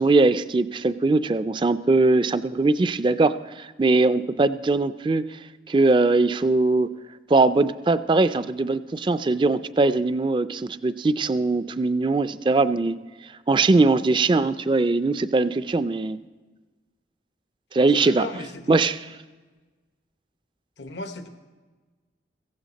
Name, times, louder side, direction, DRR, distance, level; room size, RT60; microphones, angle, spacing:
voice 1, 0.0-5.4 5.7-6.9 7.3-13.0 13.5-16.2 17.7-18.3 18.7-19.0, right 3 dB, 25° right, 14 dB, 0.3 m, -21 dB
voice 2, 17.9-18.8 20.8-21.3, left 2 dB, 85° left, 8 dB, 1.0 m, -35 dB
15.5 x 15.5 x 4.0 m, 1.3 s
head